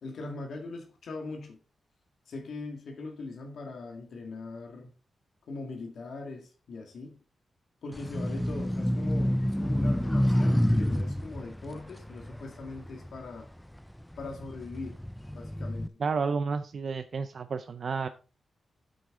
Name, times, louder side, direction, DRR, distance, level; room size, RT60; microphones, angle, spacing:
voice 1, 0.0-1.6 2.3-4.9 5.5-7.2 7.8-13.5 14.2-15.0 15.3-16.0, left 3 dB, 70° left, 2.0 m, -41 dB
sound 1, 7.9-13.5 14.0-15.9, equal, 5° left, 0.3 m, -28 dB
voice 2, 16.0-18.1, right 5 dB, 50° right, 0.5 m, -31 dB
9.2 x 8.5 x 3.7 m
wide cardioid pair, 140°, 0 cm